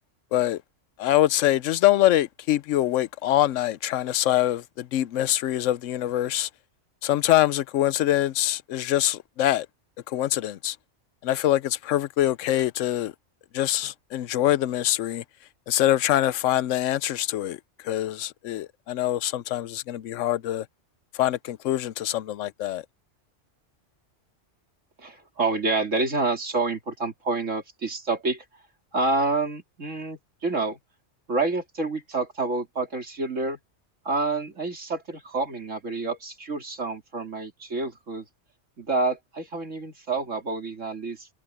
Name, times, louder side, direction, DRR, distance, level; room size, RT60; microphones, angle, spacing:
voice 1, 0.3-0.6 1.0-6.5 7.0-9.7 10.1-10.8 11.2-13.1 13.5-15.2 15.7-20.7 21.1-22.8, left 13 dB, 85° left, 1.0 m, -24 dB
voice 2, 25.0-28.5 28.9-30.8 31.3-33.6 34.1-38.3 38.8-41.3, right 3 dB, 85° right, 3.5 m, -28 dB
omnidirectional pair, 1.3 m